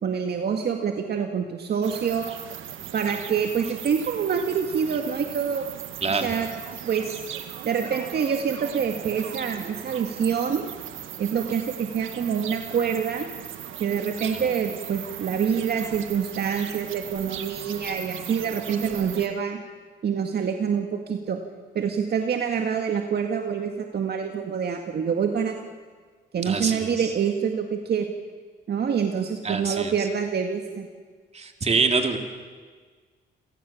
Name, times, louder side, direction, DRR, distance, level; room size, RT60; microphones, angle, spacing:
voice 1, 0.0-2.3 2.9-5.7 6.1-6.5 6.8-7.2 7.6-10.6 11.2-13.3 13.8-19.6 20.0-21.4 21.7-25.6 26.3-28.1 28.7-30.9, right 7 dB, 55° right, 4 dB, 1.9 m, -26 dB
sound 1, 1.8-19.3, right 10 dB, 80° right, 1.7 m, -38 dB
voice 2, 26.4-27.1 29.4-29.9 31.3-32.2, right 4 dB, 35° right, 4 dB, 3.2 m, -25 dB
29.5 x 17.5 x 7.3 m, 1.5 s
cardioid pair, 90°, 20 cm